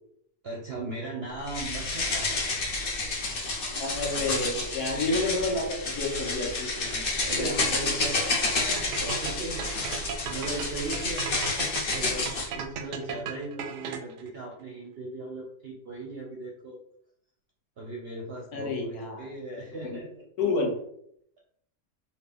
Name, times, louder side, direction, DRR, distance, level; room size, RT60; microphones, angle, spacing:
voice 1, 0.4-2.5 3.9-4.4 4.9-5.2 6.8-11.3 11.9-16.8 17.8-20.2, right 2 dB, 55° right, -1 dB, 0.7 m, -38 dB
sound 1, 1.5-12.5, left 3 dB, 45° left, 0.8 m, -30 dB
voice 2, 3.8-6.9 7.4-7.5 18.5-19.2 20.4-20.8, left 3 dB, 75° left, -1 dB, 1.5 m, -29 dB
sound 2, 8.8-14.3, right 6 dB, 90° right, 1.2 m, -36 dB
3.8 x 2.5 x 3.4 m, 0.69 s
omnidirectional pair, 1.7 m